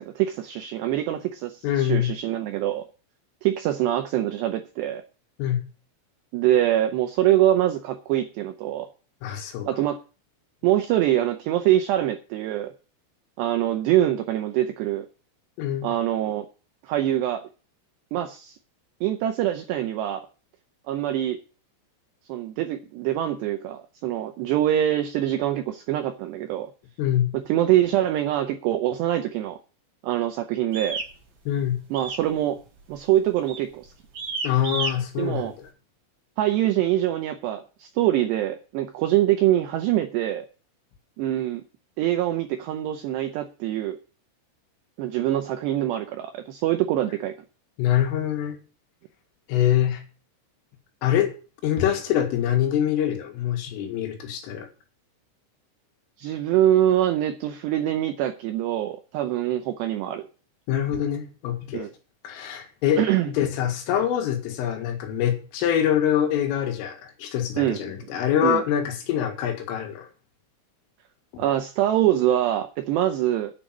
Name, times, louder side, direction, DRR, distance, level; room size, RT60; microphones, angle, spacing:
voice 1, 0.0-2.8 3.4-5.0 6.3-8.9 9.7-10.0 10.6-12.7 13.4-15.1 15.8-16.5 16.8-17.5 18.1-18.6 19.0-20.3 20.9-21.4 22.3-26.7 27.3-29.6 30.0-31.0 31.9-32.6 32.9-33.9 35.2-35.5 36.4-40.5 41.2-41.6 42.0-44.0 45.0-47.3 56.2-60.3 61.7-61.9 63.0-63.3 67.6-68.6 71.4-73.5, right 12 dB, 85° right, 2.4 m, -24 dB
voice 2, 1.6-2.1 5.4-5.6 9.2-9.7 15.6-15.9 27.0-27.3 31.5-31.8 34.4-35.7 47.8-48.6 49.5-50.0 51.0-51.3 51.6-54.7 60.7-61.9 62.2-70.1, left 10 dB, 80° left, 4.4 m, -24 dB
sound 1, 30.7-31.1 31.9-32.3 32.6-32.9 33.5-33.7 34.1-34.9, right 4 dB, 45° right, 5.1 m, -30 dB
10.0 x 6.8 x 7.3 m
omnidirectional pair, 5.9 m